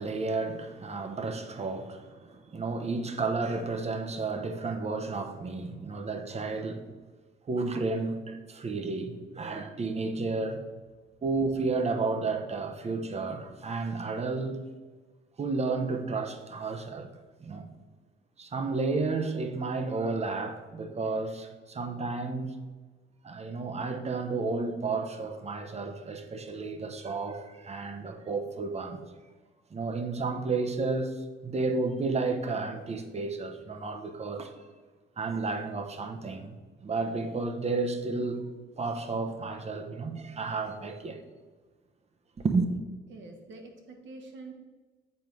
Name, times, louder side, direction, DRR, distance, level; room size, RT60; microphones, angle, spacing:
voice 1, 0.0-6.8 7.5-10.6 11.2-14.6 15.4-17.1 17.4-17.7 18.4-22.6 23.2-29.0 29.7-34.5 35.2-38.5 38.8-41.2 42.4-42.7, right 3 dB, 30° right, 0.9 m, -32 dB
voice 2, 43.1-44.5, right 3 dB, 70° right, 1.5 m, -46 dB
7.9 x 4.5 x 5.2 m
cardioid pair, 90°, 20 cm